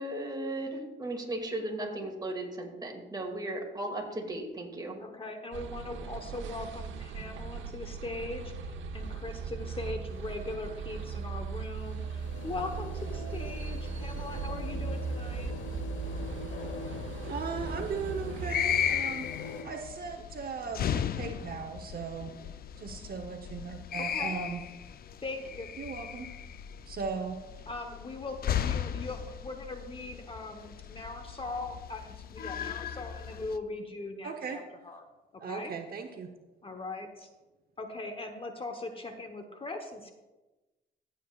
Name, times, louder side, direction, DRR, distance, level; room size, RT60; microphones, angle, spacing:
voice 1, 0.0-5.0, right 1 dB, 20° right, 1 dB, 2.3 m, -36 dB
voice 2, 5.0-15.5 24.0-24.4 25.2-25.7 27.7-35.0 35.4-35.7 36.6-37.3 37.8-40.1, left 2 dB, 25° left, 6 dB, 1.0 m, -40 dB
sound 1, 5.5-18.9, right 5 dB, 75° right, 0.9 m, -38 dB
The River Don Engine, 9.0-19.6, left 5 dB, 75° left, 1.1 m, -44 dB
voice 3, 17.2-19.3 19.6-22.3 22.8-24.6 25.8-26.3 26.9-27.4 34.2-34.6 35.4-36.3, right 5 dB, 50° right, 5 dB, 0.9 m, -37 dB
sound 2, 18.4-33.6, left 9 dB, 50° left, 0.5 m, -36 dB
15.0 x 7.8 x 2.4 m, 1.1 s
cardioid pair, 90°, 20 cm